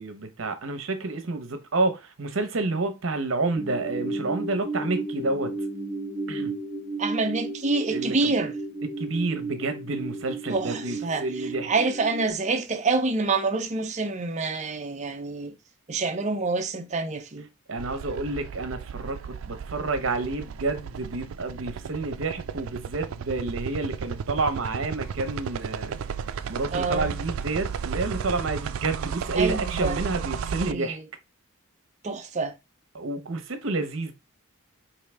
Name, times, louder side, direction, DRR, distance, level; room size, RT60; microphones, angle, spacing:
voice 1, 0.0-5.5 6.3-6.5 7.9-8.3 9.0-11.7 17.7-26.0 26.5-31.0 32.9-34.1, right 3 dB, 70° right, 0.9 m, -29 dB
sound 1, 3.5-12.3, right 2 dB, 5° right, 1.0 m, -33 dB
voice 2, 7.0-8.5 10.5-15.5 15.9-17.5 26.7-27.2 29.4-30.0 30.6-31.0 32.0-32.5, right 3 dB, 35° right, 0.6 m, -27 dB
sound 2, 17.8-30.7, right 7 dB, 85° right, 0.4 m, -34 dB
4.8 x 2.7 x 3.3 m
head